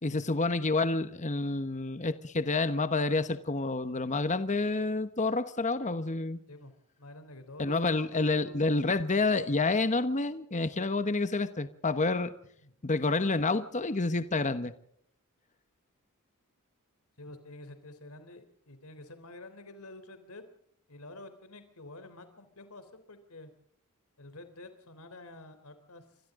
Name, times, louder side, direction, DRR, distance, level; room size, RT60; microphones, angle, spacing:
voice 1, 0.0-6.4 7.6-12.3 12.8-14.7, left 3 dB, 35° left, 1.1 m, -29 dB
voice 2, 7.0-8.9 12.6-12.7 17.2-20.4 20.9-23.5 24.2-26.1, left 2 dB, 80° left, 3.6 m, -49 dB
28.0 x 24.5 x 3.8 m
head